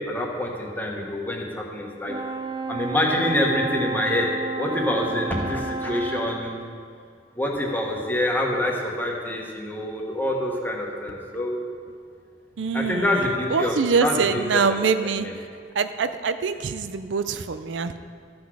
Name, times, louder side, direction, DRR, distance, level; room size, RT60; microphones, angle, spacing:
voice 1, 0.1-2.1 2.7-4.3 4.6-6.6 7.3-11.6 12.7-14.8 15.2-15.3, left 1 dB, 10° left, -1 dB, 1.3 m, -26 dB
Brass instrument, 2.1-6.5, right 3 dB, 25° right, 0.5 m, -31 dB
voice 2, 12.6-15.3 15.7-18.0, right 5 dB, 90° right, 10 dB, 0.5 m, -24 dB
13.5 x 6.1 x 4.8 m, 2.2 s
head